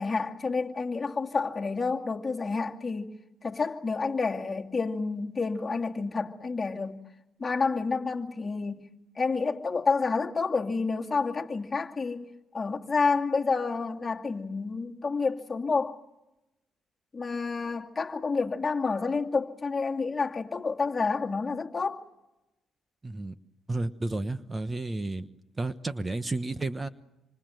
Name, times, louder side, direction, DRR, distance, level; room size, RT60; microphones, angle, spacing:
voice 1, 0.0-3.1 3.4-7.0 7.4-8.8 9.2-12.3 12.5-16.0 17.1-22.0, left 4 dB, 25° left, 2.4 m, -29 dB
voice 2, 23.0-23.4 23.7-25.3 25.6-26.9, right 2 dB, 25° right, 1.1 m, -32 dB
27.0 x 26.0 x 7.8 m
cardioid pair, 90°, 0 cm